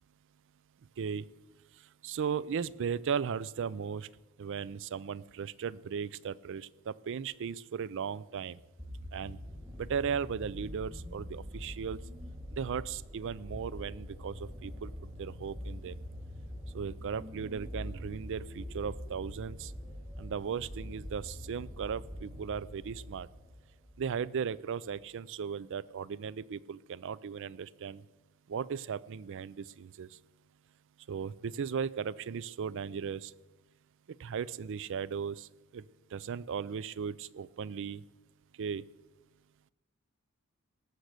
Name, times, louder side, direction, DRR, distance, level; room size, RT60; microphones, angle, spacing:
voice 1, 1.0-1.3 2.0-4.1 4.4-8.6 9.1-9.4 9.8-12.0 12.5-14.9 15.2-16.0 16.7-19.7 20.2-23.3 24.0-28.0 28.5-30.2 31.1-33.3 34.2-35.9 36.1-38.0 38.6-38.8, right 6 dB, 60° right, 21 dB, 0.4 m, -36 dB
sound 1, 8.6-24.2 25.0-25.1, equal, 15° right, 2.1 m, -44 dB
18.0 x 6.7 x 6.5 m, 1.1 s
head